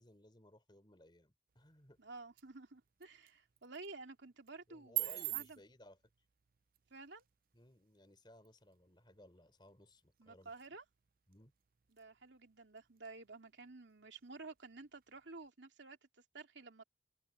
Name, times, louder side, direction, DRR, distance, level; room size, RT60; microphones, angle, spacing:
voice 1, 0.0-2.0 4.7-6.0 7.5-10.5 11.3-11.5, left 1 dB, 25° left, 3.8 m, -61 dB
sound 1, 1.5-15.5, right 16 dB, 50° right, 0.5 m, -49 dB
voice 2, 2.0-5.6 6.9-7.3 10.2-10.8 11.9-16.0 16.3-16.8, right 3 dB, 70° right, 2.7 m, -52 dB
head